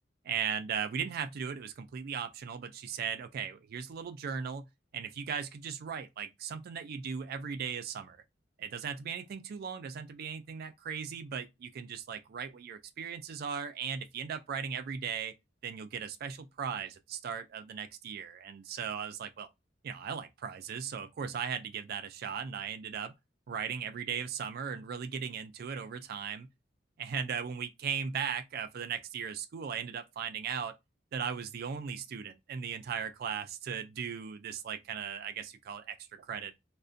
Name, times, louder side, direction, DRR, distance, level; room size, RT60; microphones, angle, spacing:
voice 1, 0.2-4.7 4.9-8.2 8.6-15.3 15.6-19.5 19.8-23.1 23.5-26.5 27.0-30.7 31.1-36.5, right 7 dB, 55° right, 0.3 m, -37 dB
2.4 x 2.1 x 2.5 m
head